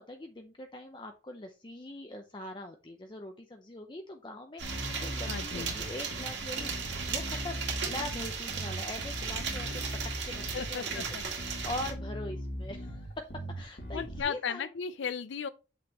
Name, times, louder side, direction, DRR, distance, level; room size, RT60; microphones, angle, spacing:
voice 1, 0.0-9.8 10.2-14.7, left 1 dB, 25° left, 0.6 m, -42 dB
Bass guitar, 4.6-14.2, equal, 65° left, 2.1 m, -40 dB
sound 1, 4.6-11.9, right 5 dB, 80° right, 2.1 m, -36 dB
voice 2, 5.3-5.7 10.5-11.2 13.9-15.5, left 6 dB, 85° left, 0.4 m, -35 dB
8.2 x 6.0 x 3.0 m
head